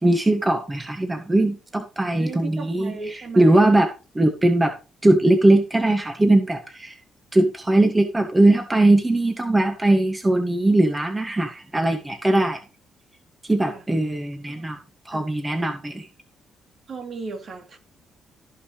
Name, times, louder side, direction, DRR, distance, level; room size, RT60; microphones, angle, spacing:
voice 1, 0.0-4.7 5.0-7.0 7.3-12.6 13.4-14.8 15.1-16.1, right 2 dB, 15° right, 1.9 m, -20 dB
voice 2, 2.1-3.8 13.7-13.8 14.6-14.7 15.1-15.3 16.9-17.8, right 4 dB, 50° right, 3.1 m, -35 dB
15.5 x 5.7 x 3.2 m
cardioid pair, 90°, 0 cm